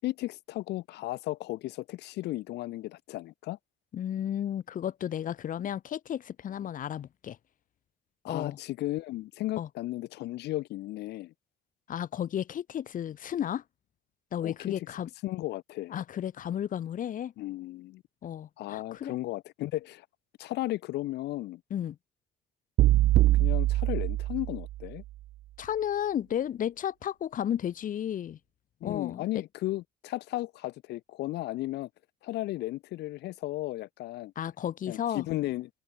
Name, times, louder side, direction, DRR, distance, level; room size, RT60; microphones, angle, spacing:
voice 1, 0.0-3.6 8.2-11.3 14.4-14.7 15.2-15.9 17.4-18.0 18.6-20.1 20.4-21.6 23.4-25.0 28.8-31.9 32.2-34.3 34.9-35.7, left 17 dB, 80° left, 5.8 m, -35 dB
voice 2, 3.9-7.4 8.3-8.6 9.6-9.7 11.9-13.6 14.3-15.1 15.9-17.3 18.2-19.2 21.7-22.0 25.6-28.4 28.8-29.4 34.4-35.3, left 10 dB, 55° left, 2.4 m, -33 dB
sound 1, 22.8-24.9, right 16 dB, 75° right, 1.9 m, -23 dB
open air
cardioid pair, 110°, 17 cm